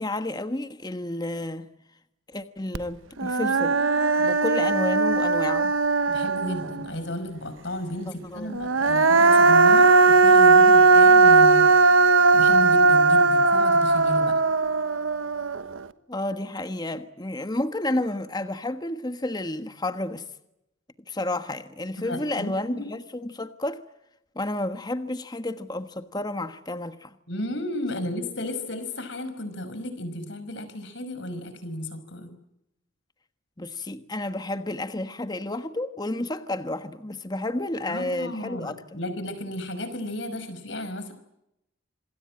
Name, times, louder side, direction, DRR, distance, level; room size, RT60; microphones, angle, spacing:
voice 1, 0.0-1.7 2.3-3.8 4.2-5.8 8.1-8.6 16.1-20.2 21.1-23.8 24.3-27.1 33.6-39.0, left 1 dB, 20° left, 1.3 m, -31 dB
Human voice, 2.7-2.8 3.2-6.9 8.5-15.8, right 3 dB, 75° right, 1.2 m, -18 dB
voice 2, 6.1-11.9 12.3-14.4 22.0-22.9 27.3-32.3 37.9-41.1, left 1 dB, 60° left, 5.4 m, -33 dB
27.0 x 21.5 x 8.8 m
head